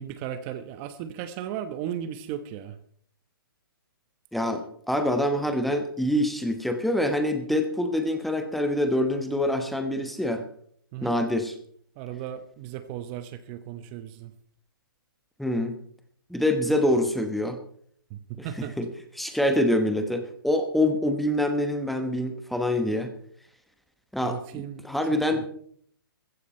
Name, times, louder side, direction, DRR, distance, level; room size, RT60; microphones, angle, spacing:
voice 1, 0.0-2.8 10.9-11.1 12.0-14.3 18.1-18.7 24.2-24.9 25.3-25.5, right 10 dB, 30° right, 12 dB, 1.0 m, -36 dB
voice 2, 4.3-10.4 11.0-11.5 15.4-15.7 16.3-17.6 18.4-18.9 19.2-23.1 24.1-25.5, left 1 dB, ahead, 6 dB, 1.1 m, -25 dB
15.0 x 14.5 x 4.3 m, 0.62 s
hypercardioid pair, 150°, 12 cm